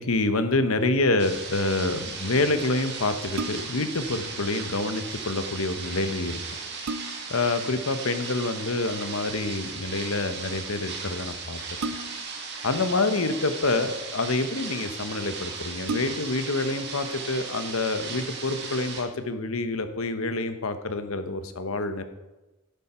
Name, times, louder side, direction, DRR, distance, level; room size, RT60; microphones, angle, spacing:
voice 1, 0.0-6.4 7.3-11.6 12.6-22.0, left 2 dB, 80° left, 9 dB, 1.0 m, -27 dB
sound 1, 1.2-19.0, right 5 dB, 50° right, 1.9 m, -37 dB
sound 2, 3.3-3.9 5.9-6.0 6.5-7.4 9.0-9.3 11.8-12.4 13.4-14.1 14.8-14.9 15.2-15.3 15.8-16.5 17.0-17.1, right 2 dB, 80° right, 0.6 m, -35 dB
10.5 x 10.5 x 4.4 m, 1.0 s
head